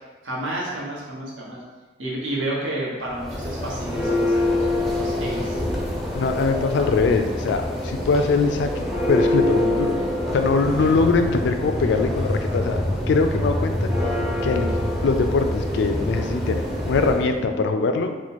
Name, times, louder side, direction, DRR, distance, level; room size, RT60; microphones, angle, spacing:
voice 1, 0.2-1.6 2.0-4.7 5.0-5.6 10.8-10.9, right 1 dB, 75° right, -5 dB, 1.0 m, -30 dB
Church bell, 3.1-17.3, left 1 dB, ahead, 0.4 m, -25 dB
voice 2, 6.1-10.0 10.3-12.8 13.1-13.9 14.4-14.7 15.0-18.2, left 4 dB, 65° left, 7 dB, 0.3 m, -22 dB
3.0 x 2.1 x 4.1 m, 1.2 s
head